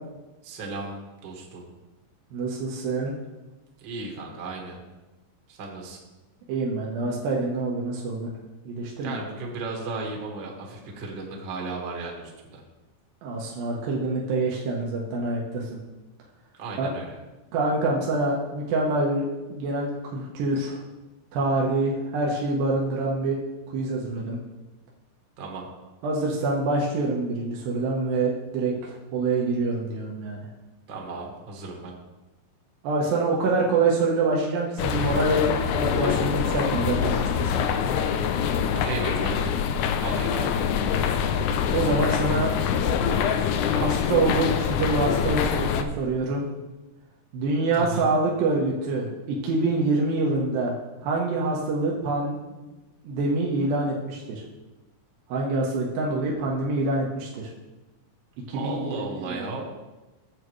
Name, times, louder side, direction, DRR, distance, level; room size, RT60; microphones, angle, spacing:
voice 1, 0.4-1.0 1.2-1.7 3.8-4.8 5.5-6.0 9.0-12.6 16.6-17.2 25.4-25.7 30.9-31.9 38.8-39.4 40.0-40.6 47.7-48.1 58.5-59.7, right 3 dB, 45° right, 0 dB, 1.7 m, -35 dB
voice 2, 2.3-3.1 6.5-8.3 8.7-9.2 13.2-15.8 16.8-16.9 17.5-20.8 21.3-23.4 23.7-24.4 26.0-30.5 32.8-37.6 41.7-42.5 43.7-46.5 47.3-50.7 51.0-52.6 53.0-54.4 55.3-57.3 58.5-59.5, right 3 dB, 80° right, -3 dB, 2.8 m, -26 dB
sound 1, 34.8-45.8, left 7 dB, 85° left, 1.7 m, -25 dB
13.0 x 7.8 x 3.1 m, 1.1 s
omnidirectional pair, 4.1 m